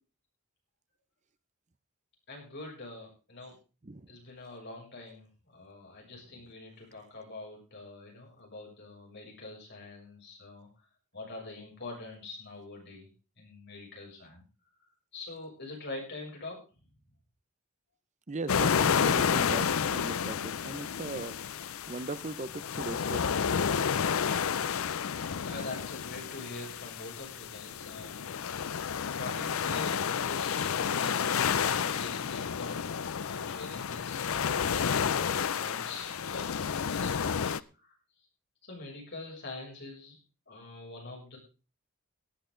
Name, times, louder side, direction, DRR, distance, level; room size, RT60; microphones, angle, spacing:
voice 1, 2.3-3.5 4.1-10.7 11.1-13.1 13.4-14.4 15.1-16.6 25.4-28.3 29.2-37.9 38.6-40.2 40.5-41.4, left 2 dB, 55° left, -1 dB, 6.9 m, -44 dB
voice 2, 18.3-23.4, right 3 dB, 35° right, 13 dB, 0.7 m, -39 dB
sound 1, 18.5-37.6, left 7 dB, 70° left, 0.5 m, -30 dB
18.0 x 10.5 x 3.9 m, 0.33 s
head